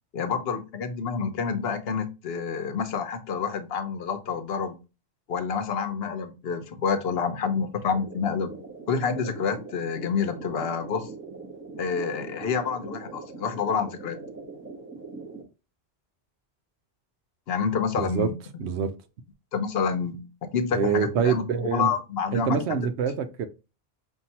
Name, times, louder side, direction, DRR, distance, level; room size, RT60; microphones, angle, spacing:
voice 1, 0.1-4.8 5.3-8.5 8.9-11.1 11.8-14.2 17.5-18.3 19.5-20.3 20.5-22.6, left 6 dB, 70° left, 0.9 m, -28 dB
sound 1, 7.9-15.4, right 4 dB, 10° right, 1.0 m, -42 dB
voice 2, 18.0-18.3 18.6-19.0 20.7-21.9 22.3-23.5, right 6 dB, 85° right, 0.9 m, -26 dB
5.5 x 2.5 x 2.8 m
omnidirectional pair, 1.1 m